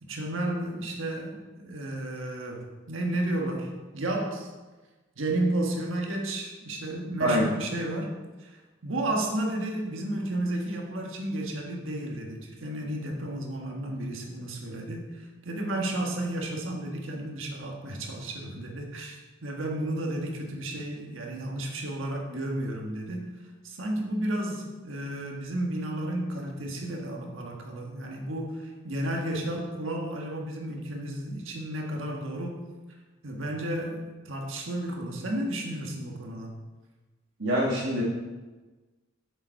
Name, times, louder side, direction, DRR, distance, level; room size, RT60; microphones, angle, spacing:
voice 1, 0.0-4.5 5.1-8.1 8.4-23.3 23.6-32.7 33.2-36.6, right 1 dB, 85° right, 1 dB, 1.5 m, -32 dB
voice 2, 37.4-38.0, equal, 70° right, -5 dB, 1.5 m, -24 dB
7.5 x 6.9 x 4.5 m, 1.2 s
head